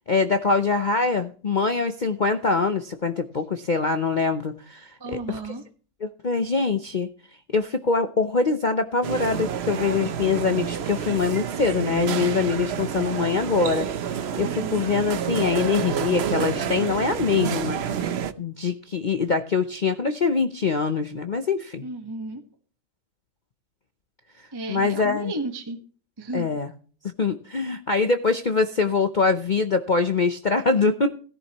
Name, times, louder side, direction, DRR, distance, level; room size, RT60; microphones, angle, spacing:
voice 1, 0.1-5.5 6.0-7.1 7.5-18.1 18.4-21.8 24.7-25.3 26.3-26.7 27.2-31.1, left 4 dB, 85° left, 8 dB, 0.4 m, -24 dB
voice 2, 5.0-5.6 14.4-14.8 21.8-22.4 24.5-25.8 26.2-26.5, right 2 dB, 15° right, 5 dB, 1.1 m, -33 dB
sound 1, 9.0-18.3, right 8 dB, 60° right, 0.6 m, -29 dB
17.0 x 11.0 x 3.0 m, 0.41 s
omnidirectional pair, 1.9 m